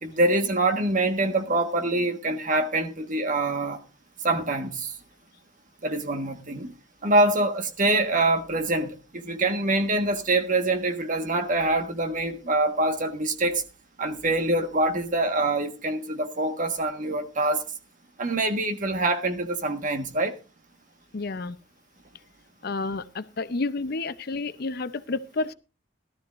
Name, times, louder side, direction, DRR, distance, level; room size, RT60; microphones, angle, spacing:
voice 1, 0.0-3.8 4.2-5.0 5.8-6.7 7.0-13.6 14.0-17.6 18.2-20.4, right 2 dB, 45° right, 1.5 m, -25 dB
voice 2, 21.1-21.6 22.6-25.5, left 3 dB, 55° left, 0.7 m, -30 dB
17.5 x 13.0 x 2.5 m
head